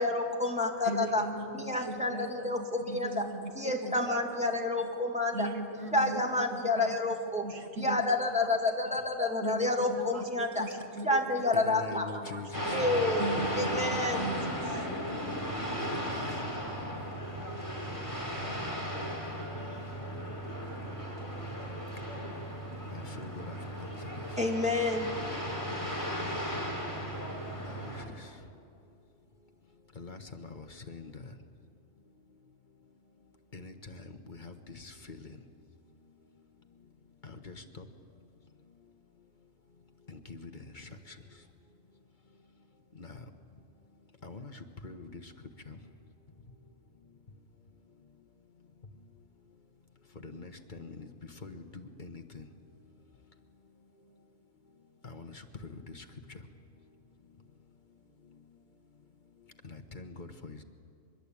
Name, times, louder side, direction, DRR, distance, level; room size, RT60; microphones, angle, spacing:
voice 1, 0.0-1.2 1.6-3.2 3.6-5.5 5.9-7.4 7.8-10.7 11.0-12.1 12.7-13.3 13.6-14.2 24.4-25.2, left 2 dB, 5° right, 1 dB, 2.3 m, -29 dB
voice 2, 0.8-4.9 5.3-7.0 7.4-8.1 8.5-8.6 9.4-12.9 13.2-14.9, right 3 dB, 70° right, 5 dB, 2.1 m, -39 dB
voice 3, 11.5-12.8 15.9-16.4 22.9-24.2 27.6-28.3 29.9-31.3 33.5-35.4 37.2-37.8 40.1-41.1 43.0-43.2 44.2-45.3 45.7-45.8 50.2-51.1 51.4-52.5 55.0-56.0 59.6-60.6, left 3 dB, 35° left, 6 dB, 1.3 m, -45 dB
sound 1, 12.5-28.0, equal, 15° left, 4.1 m, -36 dB
23.5 x 21.5 x 8.7 m, 2.6 s
omnidirectional pair, 1.4 m